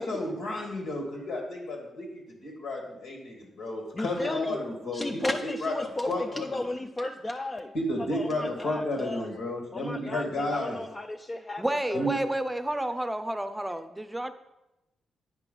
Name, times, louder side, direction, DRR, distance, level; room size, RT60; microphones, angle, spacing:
voice 1, 0.0-6.6 7.7-10.8 11.9-12.1, left 1 dB, 75° left, 0 dB, 2.3 m, -32 dB
voice 2, 3.9-4.6 4.9-7.7 8.1-9.3 9.7-11.6 11.9-12.1, left 2 dB, 30° left, 4 dB, 0.5 m, -34 dB
voice 3, 11.6-14.3, right 1 dB, 10° right, 10 dB, 0.7 m, -30 dB
9.4 x 4.5 x 5.5 m, 0.97 s
supercardioid pair, 55°, 0 cm